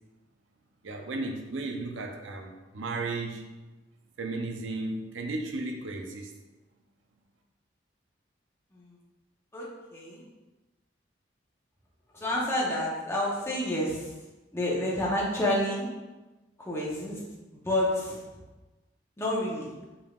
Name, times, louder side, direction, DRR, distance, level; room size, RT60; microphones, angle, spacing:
voice 1, 0.8-3.4 4.2-6.3, right 2 dB, 85° right, 4 dB, 0.6 m, -34 dB
voice 2, 9.5-10.2 12.1-14.1 14.5-15.9 16.6-17.2 17.5-18.2 19.2-19.7, left 1 dB, 15° left, -5 dB, 0.7 m, -29 dB
5.2 x 3.4 x 2.4 m, 1.1 s
head